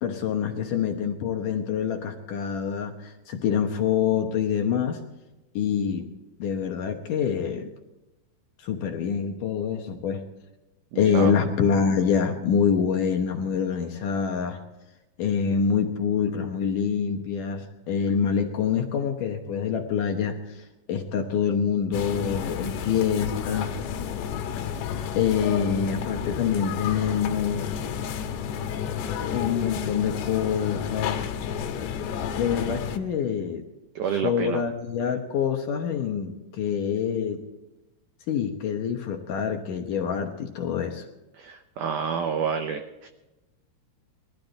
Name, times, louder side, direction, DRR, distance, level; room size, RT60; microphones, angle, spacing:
voice 1, 0.0-5.0 5.6-6.1 6.4-7.7 8.6-10.2 11.0-14.6 15.2-23.8 25.2-27.8 29.3-31.2 32.4-33.6 34.2-37.4 38.3-41.0, left 7 dB, 65° left, 4 dB, 2.2 m, -26 dB
voice 2, 10.9-11.3 33.9-34.6 41.3-43.1, right 7 dB, 85° right, 6 dB, 1.8 m, -29 dB
sound 1, 21.9-33.0, left 8 dB, 90° left, 3.3 m, -31 dB
21.5 x 14.0 x 4.0 m, 1.0 s
omnidirectional pair, 4.8 m